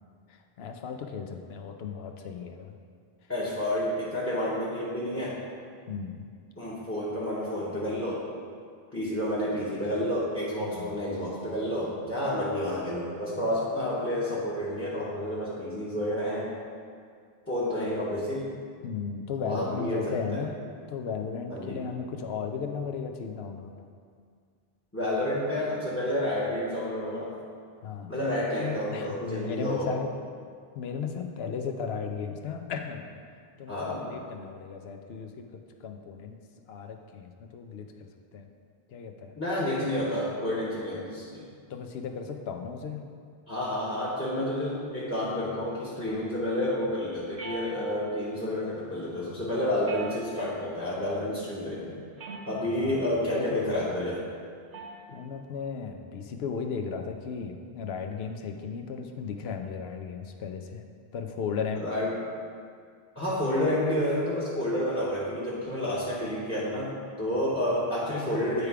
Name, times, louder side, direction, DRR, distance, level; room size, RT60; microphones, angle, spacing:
voice 1, 0.3-2.8 5.9-6.3 9.0-9.1 10.6-10.9 18.8-20.6 20.9-23.7 27.8-28.2 28.6-30.1 30.8-33.1 33.6-35.4 35.8-36.4 36.7-38.5 38.9-39.3 41.7-43.0 52.8-54.0 55.1-60.8 61.1-61.9, left 6 dB, 80° left, 4 dB, 0.9 m, -35 dB
voice 2, 3.3-5.4 6.6-8.2 8.9-16.5 17.5-18.5 19.4-20.4 21.5-21.8 24.9-27.3 28.1-30.0 33.7-34.1 39.4-41.4 43.5-52.0 52.5-54.2 61.7-62.2 63.1-68.7, left 1 dB, 15° left, -7 dB, 0.9 m, -30 dB
sound 1, 47.4-48.2 49.8-50.7 52.2-52.9 54.7-55.1, right 2 dB, 85° right, 1.1 m, -42 dB
9.4 x 3.4 x 4.7 m, 2.1 s
omnidirectional pair, 1.0 m